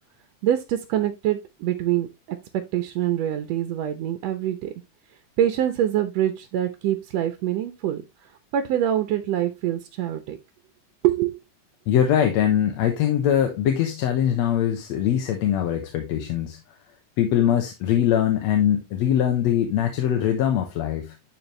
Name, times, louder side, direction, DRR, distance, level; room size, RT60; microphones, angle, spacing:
voice 1, 0.4-2.4 2.7-4.7 5.4-8.0 8.5-10.4 11.0-11.3, right 11 dB, 70° right, 1.9 m, -25 dB
voice 2, 11.9-16.6 17.2-21.1, left 10 dB, 70° left, 2.1 m, -22 dB
11.0 x 4.5 x 3.2 m
omnidirectional pair, 3.4 m